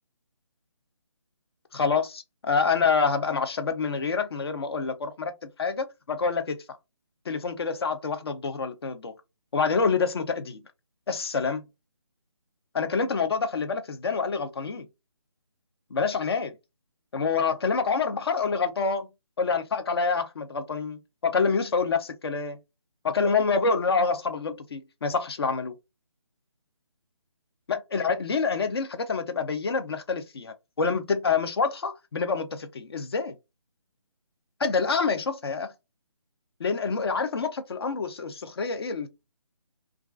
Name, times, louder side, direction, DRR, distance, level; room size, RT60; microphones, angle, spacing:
voice 1, 1.7-6.6 7.3-9.1 9.5-10.6 11.1-11.7 12.7-14.9 15.9-16.6 17.1-19.1 19.4-22.6 23.0-25.8 27.7-33.4 34.6-35.7 36.6-39.1, left 5 dB, 50° left, 0.5 m, -27 dB
2.3 x 2.3 x 2.3 m
figure-of-eight pair, 160°, 16 cm